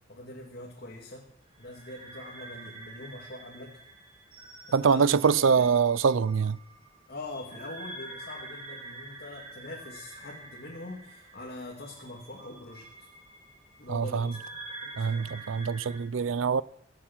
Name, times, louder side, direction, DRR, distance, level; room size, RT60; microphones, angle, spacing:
voice 1, 0.1-1.3 1.6-3.8 4.8-5.7 7.1-13.1 13.8-14.4 14.8-15.5, left 2 dB, 55° left, 2.4 m, -43 dB
sound 1, 1.5-16.0, right 2 dB, 30° right, 4.5 m, -47 dB
voice 2, 4.7-6.6 13.9-14.3 15.0-16.6, right 6 dB, 90° right, 0.5 m, -24 dB
23.5 x 8.6 x 6.1 m
head